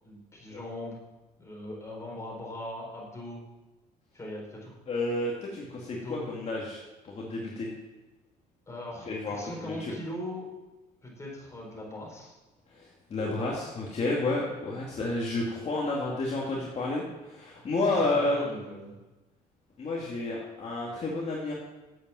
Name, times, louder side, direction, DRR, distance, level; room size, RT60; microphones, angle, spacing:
voice 1, 0.0-1.0 1.4-3.4 4.1-4.8 6.0-6.3 8.7-10.5 11.0-12.3 17.9-18.9, left 1 dB, 15° left, -3 dB, 4.7 m, -40 dB
voice 2, 4.9-7.7 9.1-9.9 12.7-18.4 19.8-21.5, left 2 dB, 40° left, -3 dB, 2.3 m, -31 dB
9.0 x 8.5 x 7.5 m, 1.1 s
cardioid pair, 110°, 17 cm